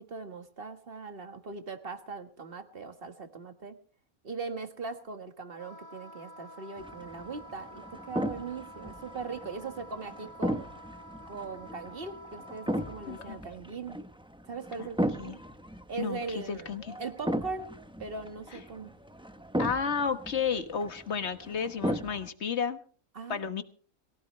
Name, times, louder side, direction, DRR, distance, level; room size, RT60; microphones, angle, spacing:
voice 1, 0.0-3.8 4.2-10.7 11.3-14.0 14.4-15.4 15.9-17.7 18.0-18.9 23.1-23.5, right 4 dB, 40° right, 7 dB, 1.8 m, -40 dB
Wind instrument woodwind instrument, 5.5-13.4, equal, 35° left, 1.7 m, -49 dB
sound 1, 6.8-22.3, equal, 5° right, 0.6 m, -37 dB
voice 2, 13.1-13.4 14.8-14.9 15.2-15.4 16.0-17.0 19.6-22.8 23.3-23.6, left 6 dB, 50° left, 10 dB, 1.6 m, -32 dB
22.5 x 16.5 x 3.3 m, 0.41 s
omnidirectional pair, 1.5 m